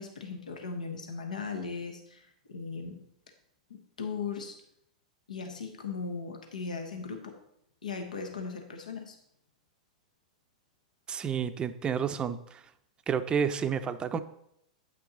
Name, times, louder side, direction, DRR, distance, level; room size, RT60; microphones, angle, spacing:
voice 1, 0.0-3.0 3.7-4.6 5.3-7.3 7.8-9.2, left 5 dB, 85° left, 4 dB, 1.1 m, -38 dB
voice 2, 11.1-12.6 13.1-14.2, right 7 dB, 25° right, 11 dB, 0.5 m, -30 dB
8.7 x 5.9 x 3.8 m, 0.75 s
hypercardioid pair, 105°, 4 cm